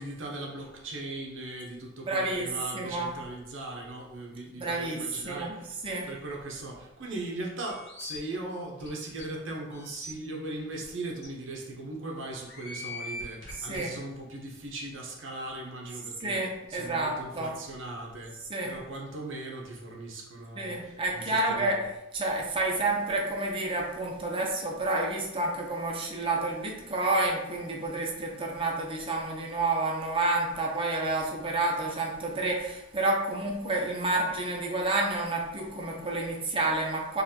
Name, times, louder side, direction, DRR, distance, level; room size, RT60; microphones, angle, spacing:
voice 1, 0.0-5.8 6.0-18.4 18.6-21.8, right 2 dB, 60° right, -1 dB, 0.7 m, -39 dB
voice 2, 2.0-3.1 4.6-5.0 5.2-5.6 5.8-6.1 13.6-13.9 16.2-17.5 18.5-18.7 20.6-21.8 22.1-37.2, right 2 dB, 25° right, -1 dB, 0.6 m, -29 dB
sound 1, 7.7-8.2 8.8-8.9 9.2-9.3 9.7-10.1 10.8-10.9 11.2-11.3 12.3-13.9, left 2 dB, 55° left, 1.1 m, -41 dB
3.9 x 2.4 x 2.7 m, 0.92 s
head